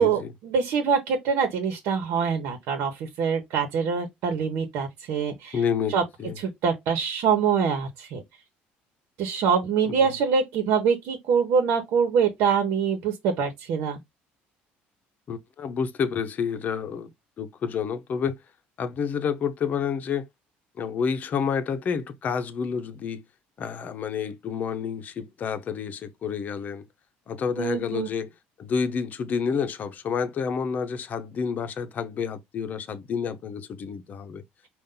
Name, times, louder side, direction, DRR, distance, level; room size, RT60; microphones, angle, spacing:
voice 1, 0.0-5.6 5.9-6.0 6.4-8.2 9.2-14.0 27.6-28.1, right 6 dB, 70° right, 1.2 m, -24 dB
voice 2, 5.5-6.3 9.9-10.1 15.3-17.1 17.4-18.4 18.8-20.3 20.8-23.2 23.6-26.8 27.3-28.3 28.6-34.4, left 6 dB, 40° left, 0.8 m, -29 dB
5.3 x 2.5 x 3.8 m
cardioid pair, 125°, 4 cm